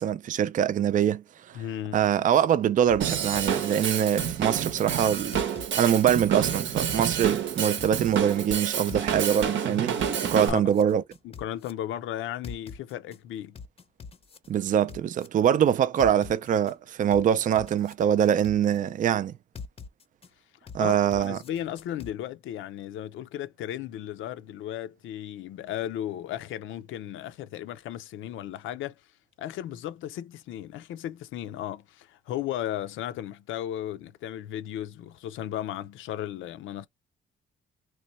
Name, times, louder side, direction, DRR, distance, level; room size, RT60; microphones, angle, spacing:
voice 1, 0.0-1.6 1.9-5.4 5.7-9.9 10.2-11.0 14.5-19.3 20.7-21.4, right 9 dB, 40° right, 0.4 m, -24 dB
voice 2, 1.5-2.0 10.5-10.6 11.2-13.6 20.8-29.0 29.4-36.9, left 11 dB, 80° left, 0.5 m, -35 dB
sound 1, 2.9-4.6 5.3-6.1 6.4-8.2 8.9-9.6 10.0-11.7 12.4-13.2 13.6-15.3 16.0-16.7 17.1-18.8 19.6-20.3 20.7-22.1, left 5 dB, 30° left, 0.6 m, -43 dB
Drum kit / Drum, 3.0-10.5, right 8 dB, 75° right, 0.8 m, -29 dB
3.1 x 2.2 x 4.0 m
cardioid pair, 90°, 20 cm